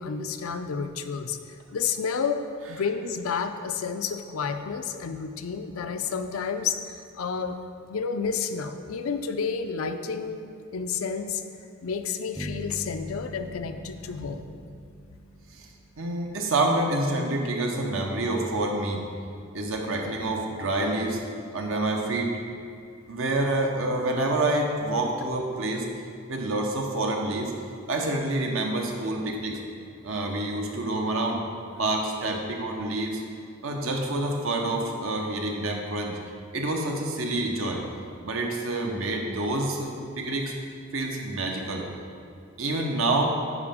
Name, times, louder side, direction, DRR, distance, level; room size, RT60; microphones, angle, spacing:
voice 1, 0.0-1.4 1.7-2.4 2.7-7.6 7.9-10.4 10.7-11.4 11.8-14.5, left 6 dB, 90° left, 7 dB, 0.5 m, -30 dB
sound 1, 12.4-16.3, equal, 10° right, 0.4 m, -41 dB
voice 2, 16.0-19.1 19.5-21.2 21.5-22.3 23.1-25.9 26.3-27.5 27.9-29.6 30.0-31.4 31.8-33.2 33.6-36.2 36.5-37.8 38.2-40.5 40.9-41.9 42.6-43.2, right 2 dB, 75° right, 1 dB, 0.9 m, -27 dB
9.7 x 5.2 x 3.6 m, 2.3 s
head